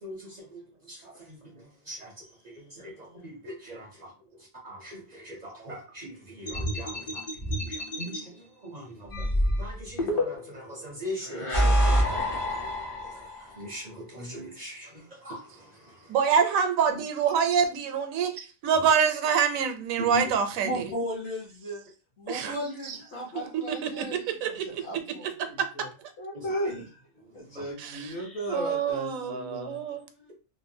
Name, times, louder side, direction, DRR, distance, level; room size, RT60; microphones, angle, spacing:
voice 1, 0.0-0.4 1.0-1.5 1.9-2.1 2.4-3.9 4.6-7.2 7.6-9.3 9.6-16.2 16.9-17.0 18.7-18.9 20.0-20.3 26.3-26.4 27.5-27.7, equal, 50° right, 0.5 m, -41 dB
sound 1, 6.5-8.2 9.1-10.6 11.2-13.4, equal, 35° left, 0.5 m, -27 dB
voice 2, 16.1-20.8 22.3-22.5 23.7-24.6 25.6-25.7 27.8-28.1 28.5-30.0, right 7 dB, 85° right, 1.0 m, -26 dB
voice 3, 20.6-21.8 22.2-24.6 24.8-26.9 27.3-29.9 30.2-30.3, equal, 55° left, 1.1 m, -36 dB
3.0 x 2.0 x 2.6 m
omnidirectional pair, 1.4 m